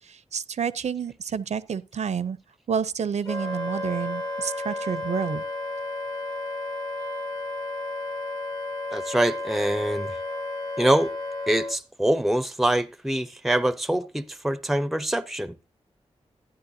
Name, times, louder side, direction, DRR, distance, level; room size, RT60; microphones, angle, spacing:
voice 1, 0.0-2.4 2.7-5.4, right 7 dB, 80° right, 0.6 m, -29 dB
Wind instrument woodwind instrument, 3.2-11.8, left 2 dB, 35° left, 1.1 m, -32 dB
voice 2, 8.9-10.1 10.8-11.1 11.5-15.6, right 1 dB, ahead, 0.5 m, -24 dB
12.5 x 10.0 x 2.6 m
wide cardioid pair, 90°, 12 cm